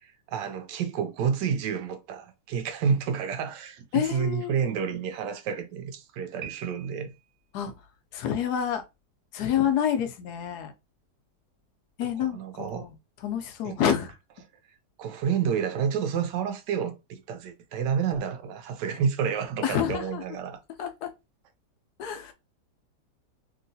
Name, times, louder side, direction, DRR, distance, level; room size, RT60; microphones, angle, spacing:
voice 1, 0.3-7.1 12.2-12.9 13.6-13.8 15.0-20.6, right 7 dB, 90° right, 1.2 m, -29 dB
voice 2, 3.9-4.5 7.5-7.7 8.1-8.8 9.3-10.7 12.0-12.9 13.2-14.1 19.6-20.2 20.8-21.1 22.0-22.3, left 9 dB, 75° left, 1.1 m, -28 dB
Piano, 6.4-7.4, right 9 dB, 65° right, 1.2 m, -44 dB
3.0 x 2.9 x 2.6 m
omnidirectional pair, 1.8 m